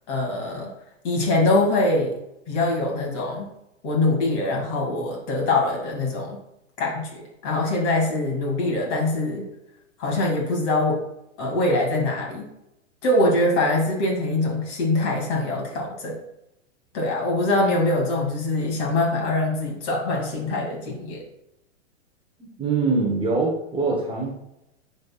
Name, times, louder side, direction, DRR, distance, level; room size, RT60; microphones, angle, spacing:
voice 1, 0.1-0.7 1.0-2.1 2.5-3.5 3.8-6.4 6.8-9.5 10.0-11.0 11.4-12.5 13.0-16.2 16.9-21.2, left 2 dB, 40° left, -1 dB, 2.5 m, -23 dB
voice 2, 22.4-24.3, right 3 dB, 15° right, -2 dB, 1.0 m, -23 dB
10.5 x 4.1 x 2.4 m, 0.85 s
hypercardioid pair, 115°, 37 cm